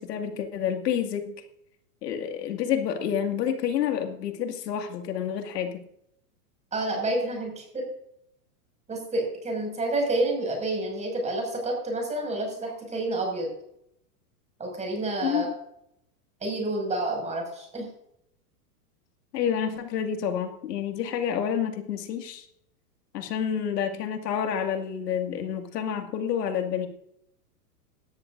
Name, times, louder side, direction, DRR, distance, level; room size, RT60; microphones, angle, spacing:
voice 1, 0.0-1.3 2.0-5.8 15.2-15.5 19.3-22.4 23.1-26.9, left 8 dB, 85° left, 5 dB, 2.3 m, -29 dB
voice 2, 6.7-7.9 8.9-13.5 14.6-15.5 16.4-17.9, right 2 dB, 15° right, 1 dB, 6.2 m, -29 dB
18.5 x 13.5 x 2.6 m, 0.75 s
supercardioid pair, 145°, 47 cm